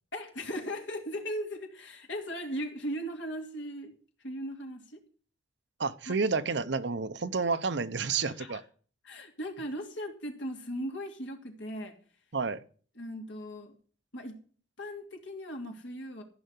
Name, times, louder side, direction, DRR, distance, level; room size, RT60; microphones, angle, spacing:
voice 1, 0.1-3.9 4.2-5.0 6.1-6.2 8.4-8.6 9.0-11.9 13.0-13.7 14.1-14.4 14.8-16.2, equal, 65° left, 2.7 m, -38 dB
voice 2, 5.8-8.6 12.3-12.6, right 4 dB, 60° right, 0.8 m, -30 dB
14.0 x 5.5 x 8.2 m
head